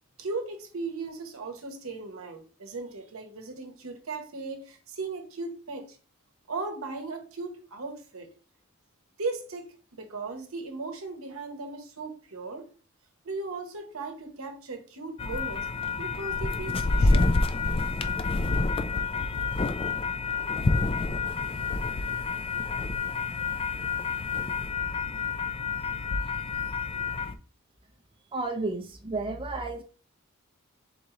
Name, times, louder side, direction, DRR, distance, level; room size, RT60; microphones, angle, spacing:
voice 1, 0.2-6.0 6.5-8.3 9.2-12.7 13.2-15.7 16.0-17.3, right 3 dB, 80° right, 0.9 m, -37 dB
sound 1, 15.2-27.3, left 3 dB, 25° left, 0.3 m, -28 dB
voice 2, 28.3-29.8, right 3 dB, 25° right, 0.6 m, -32 dB
3.8 x 3.1 x 3.6 m
head